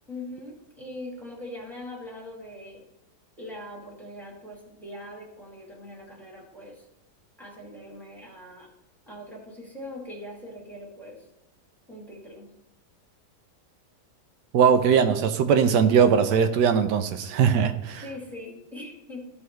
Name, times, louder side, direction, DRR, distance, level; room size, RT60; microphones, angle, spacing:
voice 1, 0.1-2.8 3.4-6.9 7.4-8.7 9.1-11.2 11.9-12.5 18.0-19.3, left 1 dB, ahead, -2 dB, 2.2 m, -41 dB
voice 2, 14.5-18.0, right 7 dB, 85° right, 9 dB, 1.3 m, -20 dB
13.5 x 6.3 x 3.1 m, 0.89 s
omnidirectional pair, 1.8 m